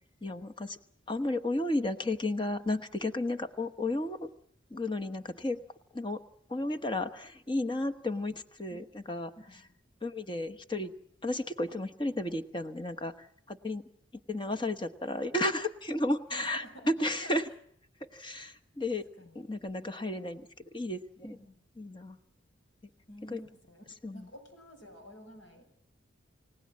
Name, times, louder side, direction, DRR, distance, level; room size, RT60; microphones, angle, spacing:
voice 1, 0.2-0.8 1.1-4.3 4.7-5.6 5.9-6.2 6.5-9.3 10.0-10.9 11.2-13.8 14.3-17.5 18.1-19.0 19.3-20.5 20.7-21.3 21.8-22.2 23.3-23.4 24.0-24.3, left 1 dB, 25° left, 8 dB, 1.1 m, -33 dB
voice 2, 16.3-16.9 17.2-17.4 18.3-18.5 19.2-19.4 21.2-21.6 23.1-23.8 24.1-25.7, equal, 90° left, 5 dB, 6.0 m, -50 dB
29.5 x 17.5 x 7.5 m, 0.69 s
head